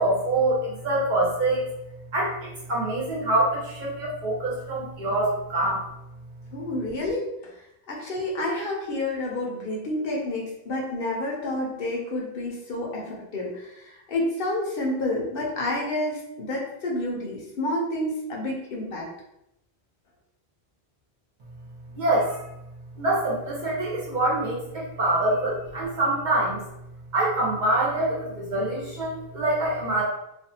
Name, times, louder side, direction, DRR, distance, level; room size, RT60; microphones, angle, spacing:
voice 1, 0.0-1.7 2.1-5.8 21.9-22.5 23.0-26.6 27.1-30.0, right 2 dB, 50° right, -5 dB, 0.8 m, -25 dB
voice 2, 6.5-7.6 7.9-19.1, left 1 dB, 65° left, -2 dB, 0.8 m, -29 dB
2.5 x 2.3 x 2.7 m, 0.83 s
omnidirectional pair, 1.1 m